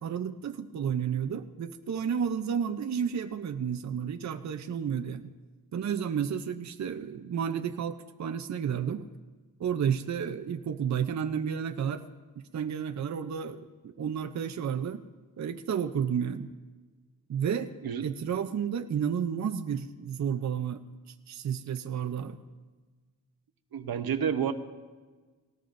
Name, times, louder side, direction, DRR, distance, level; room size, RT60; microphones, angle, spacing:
voice 1, 0.0-5.3 5.7-9.1 9.6-12.0 12.5-15.0 15.4-16.5 17.3-17.7 18.0-20.8 21.3-22.4, right 8 dB, 50° right, 8 dB, 0.6 m, -31 dB
voice 2, 23.7-24.5, right 8 dB, 75° right, 9 dB, 0.8 m, -29 dB
18.5 x 18.0 x 2.6 m, 1.4 s
wide cardioid pair, 95°, 36 cm